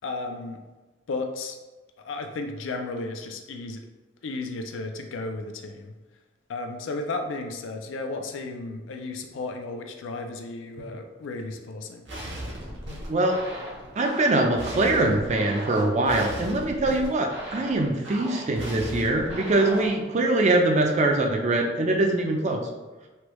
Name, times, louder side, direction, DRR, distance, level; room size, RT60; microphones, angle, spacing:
voice 1, 0.0-0.6 1.1-1.6 2.0-3.8 4.2-5.9 6.5-12.0, left 3 dB, 80° left, 4 dB, 0.4 m, -34 dB
sound 1, 12.1-20.0, right 1 dB, 65° right, 0.8 m, -37 dB
voice 2, 13.1-13.4 14.0-22.6, right 2 dB, 40° right, 3 dB, 0.4 m, -23 dB
3.3 x 2.2 x 3.0 m, 1.2 s
head